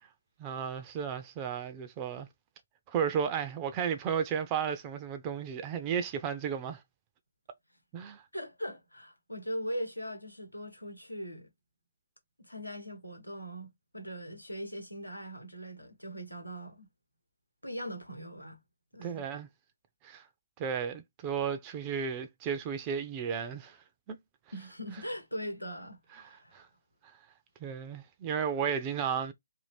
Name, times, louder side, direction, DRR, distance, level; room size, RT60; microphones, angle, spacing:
voice 1, 0.4-2.3 2.9-6.8 7.9-8.2 19.0-19.5 20.0-20.2 20.6-23.8 24.1-24.2 26.1-26.7 27.6-29.3, right 7 dB, 20° right, 0.4 m, -33 dB
voice 2, 8.3-11.5 12.4-16.9 17.6-18.6 18.9-19.3 24.5-26.6, equal, 90° left, 1.0 m, -40 dB
2.6 x 2.5 x 3.3 m
figure-of-eight pair, 140°, 0 cm